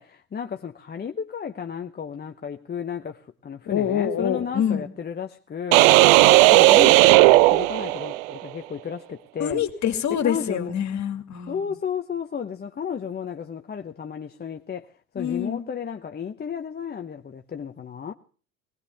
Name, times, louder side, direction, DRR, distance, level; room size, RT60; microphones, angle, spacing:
voice 1, 0.0-9.6 10.1-10.7 11.5-18.1, left 7 dB, 25° left, 0.9 m, -33 dB
voice 2, 3.7-4.9 9.4-11.7 15.2-15.6, left 9 dB, 45° left, 2.4 m, -26 dB
sound 1, 5.7-8.3, right 19 dB, 75° right, 0.6 m, -15 dB
19.0 x 18.0 x 3.4 m
hypercardioid pair, 80°, 39 cm